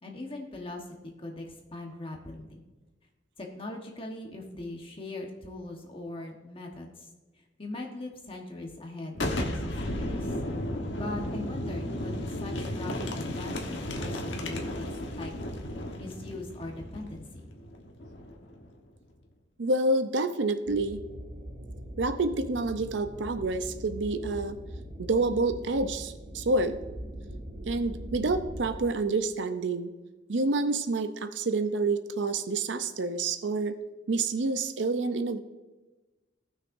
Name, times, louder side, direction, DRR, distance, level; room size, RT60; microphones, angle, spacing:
voice 1, 0.0-2.6 3.4-7.1 7.3-10.3 10.6-15.3 16.0-17.5, left 2 dB, 30° left, 1 dB, 1.2 m, -40 dB
Boom, 9.1-18.7, left 1 dB, 80° left, 1.3 m, -34 dB
voice 2, 19.6-21.0 22.0-24.6 25.0-26.8 27.7-29.9 30.3-33.7 34.1-35.4, right 3 dB, 80° right, 10 dB, 0.6 m, -28 dB
sound 1, 20.7-28.8, equal, 45° right, 1.3 m, -41 dB
18.0 x 6.2 x 2.6 m, 1.2 s
head